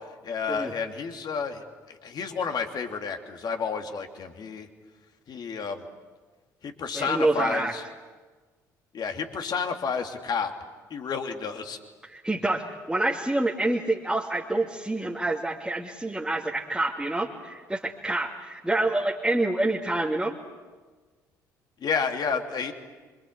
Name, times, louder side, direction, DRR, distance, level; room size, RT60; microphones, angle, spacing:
voice 1, 0.2-4.7 5.3-5.8 6.6-7.8 8.9-10.5 10.9-11.8 21.8-22.7, left 5 dB, 50° left, 4 dB, 3.1 m, -30 dB
voice 2, 6.9-7.7 12.0-20.4, right 2 dB, 10° right, -1 dB, 2.6 m, -27 dB
26.5 x 25.5 x 8.3 m, 1.4 s
hypercardioid pair, 50°, 9 cm